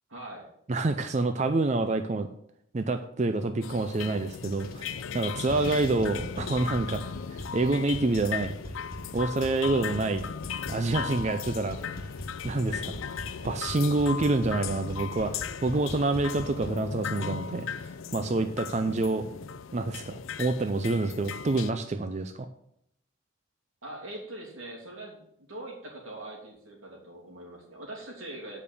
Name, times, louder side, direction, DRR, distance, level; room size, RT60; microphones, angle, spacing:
voice 1, 0.1-0.5 23.8-28.6, right 1 dB, 85° right, 0 dB, 2.8 m, -42 dB
voice 2, 0.7-2.3 2.7-8.5 9.1-10.2 10.7-11.8 12.4-13.0 13.4-19.3 19.7-22.5, right 2 dB, 35° right, 8 dB, 0.4 m, -27 dB
sound 1, 3.6-21.7, left 7 dB, 80° left, 0.5 m, -37 dB
sound 2, 4.5-5.1 5.4-16.7, left 1 dB, 45° left, 1.3 m, -41 dB
9.1 x 5.2 x 6.8 m, 0.74 s
head